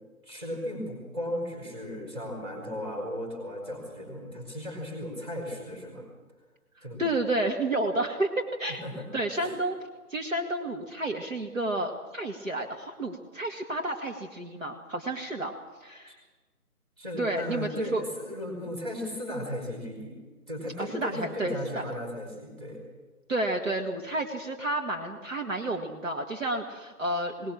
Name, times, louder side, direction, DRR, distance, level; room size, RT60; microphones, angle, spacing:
voice 1, 0.2-6.0 6.8-7.0 8.7-9.1 9.3-9.6 16.1-16.2 17.0-20.2 20.5-22.8, left 1 dB, 15° right, 0 dB, 4.7 m, -36 dB
voice 2, 7.0-8.8 9.1-9.8 10.1-15.5 15.8-16.2 17.2-18.0 20.8-21.8 23.3-27.5, right 1 dB, 55° right, 2 dB, 2.1 m, -31 dB
21.0 x 19.5 x 7.3 m, 1.3 s
figure-of-eight pair, 160°, 46 cm